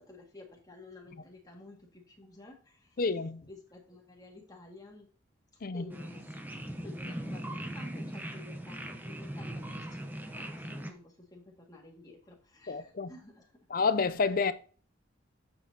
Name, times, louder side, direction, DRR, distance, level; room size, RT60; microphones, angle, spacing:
voice 1, 0.0-3.0 3.5-5.1 5.7-6.4 6.8-13.5, left 2 dB, 20° left, 2.0 m, -52 dB
voice 2, 3.0-3.4 5.6-5.8 12.7-13.1 13.7-14.5, left 4 dB, 45° left, 0.5 m, -29 dB
sound 1, 5.9-10.9, right 1 dB, 10° right, 0.8 m, -40 dB
9.3 x 7.2 x 2.8 m
head